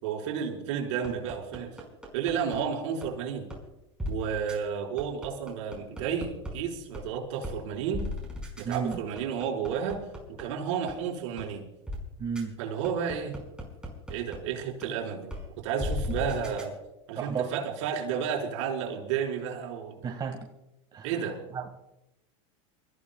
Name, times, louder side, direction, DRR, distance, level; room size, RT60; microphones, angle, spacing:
voice 1, 0.0-1.7 2.1-3.5 4.1-8.0 8.6-10.0 10.4-11.6 12.6-13.4 14.1-15.3 15.6-16.7 17.1-20.0 21.0-21.4, right 7 dB, 70° right, 0 dB, 4.9 m, -32 dB
sound 1, 1.0-2.6 3.0-3.1 3.5-3.6 4.0-4.1 4.5-4.6 5.0-6.5 6.9-7.0 7.4-7.6 7.9-10.4 10.9-11.0 11.4-11.5 11.9-12.0 12.4-12.5 12.8-14.4 14.8-14.9 15.3-15.4 15.8-16.6, left 1 dB, 5° right, 5.0 m, -35 dB
voice 2, 8.6-9.0 12.2-12.5 17.2-17.5 20.0-20.4 20.9-21.7, right 6 dB, 25° right, 2 dB, 1.8 m, -33 dB
29.0 x 15.0 x 2.3 m, 0.91 s
supercardioid pair, 130°, 16 cm